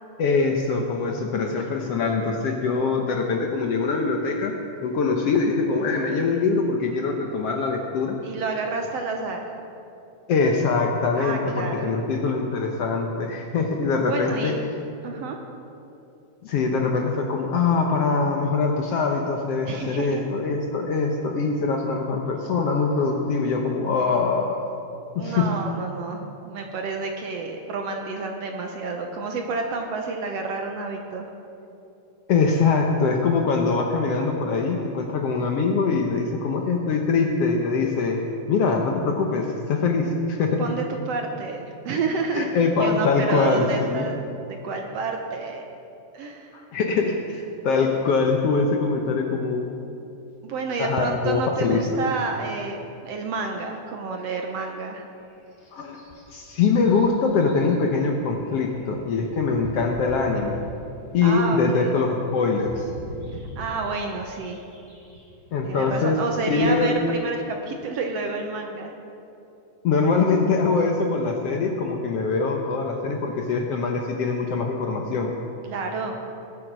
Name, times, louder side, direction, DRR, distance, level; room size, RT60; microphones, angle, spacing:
voice 1, 0.2-4.5 4.8-8.2 10.3-14.5 16.4-24.6 25.1-25.5 32.3-38.2 38.5-40.7 42.3-44.0 46.5-49.7 50.8-51.8 55.7-56.0 56.3-60.6 61.1-62.9 65.5-66.2 66.5-67.0 69.8-75.3, left 4 dB, 65° left, 2 dB, 1.6 m, -23 dB
voice 2, 8.2-9.4 11.2-11.9 14.0-14.5 15.0-15.4 19.6-20.2 25.2-31.3 40.6-42.5 42.8-44.2 44.5-45.6 46.1-46.5 50.4-55.1 61.2-62.0 63.3-64.6 65.6-68.9 75.6-76.2, right 4 dB, 65° right, 3 dB, 1.7 m, -29 dB
sound 1, 55.2-66.9, equal, 25° left, 3.2 m, -43 dB
20.5 x 8.3 x 6.1 m, 2.7 s
omnidirectional pair, 3.6 m